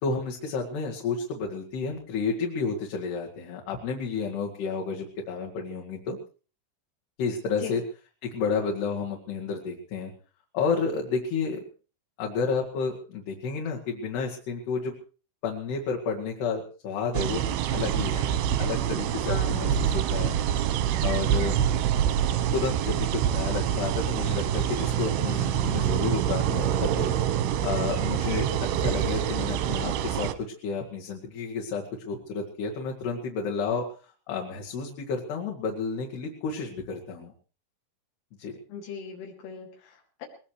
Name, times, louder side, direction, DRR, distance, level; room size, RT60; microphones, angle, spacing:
voice 1, 0.0-6.2 7.2-7.8 8.2-10.1 10.5-11.6 12.2-14.9 15.4-17.4 17.7-20.4 21.0-21.5 22.5-27.1 27.6-28.5 28.8-37.3 38.4-38.6, left 5 dB, 60° left, -2 dB, 3.6 m, -31 dB
sound 1, 17.1-30.3, right 9 dB, 80° right, 2.4 m, -26 dB
voice 2, 19.2-19.9 38.7-40.3, left 6 dB, 80° left, 0 dB, 5.1 m, -39 dB
20.5 x 20.5 x 3.2 m, 0.38 s
omnidirectional pair, 5.7 m